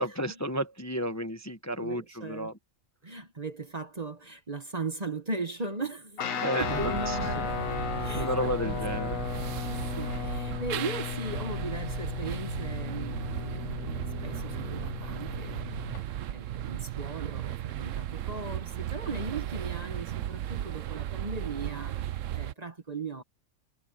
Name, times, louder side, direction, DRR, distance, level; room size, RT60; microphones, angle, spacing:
voice 1, 0.0-2.5 6.4-7.5 8.1-9.2 9.6-9.7, equal, 15° left, 0.9 m, -32 dB
voice 2, 1.8-2.5 3.0-7.6 8.0-8.8 9.6-15.9 16.3-23.2, right 3 dB, 30° right, 1.2 m, -38 dB
Guitar, 6.2-16.0, left 9 dB, 75° left, 1.4 m, -35 dB
sound 1, 6.6-22.5, right 12 dB, 70° right, 1.0 m, -36 dB
omnidirectional pair, 1.4 m